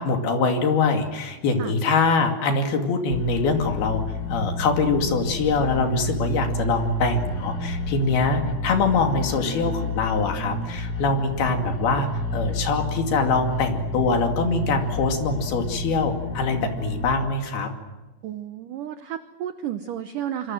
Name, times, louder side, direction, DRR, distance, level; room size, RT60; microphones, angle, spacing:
voice 1, 0.0-4.0 4.3-17.7, left 4 dB, 60° left, 4 dB, 4.2 m, -23 dB
sound 1, 3.1-17.1, left 1 dB, 35° left, 1.7 m, -30 dB
voice 2, 18.2-20.5, right 10 dB, 85° right, 9 dB, 1.9 m, -32 dB
26.5 x 25.5 x 7.7 m, 1.2 s
omnidirectional pair, 5.2 m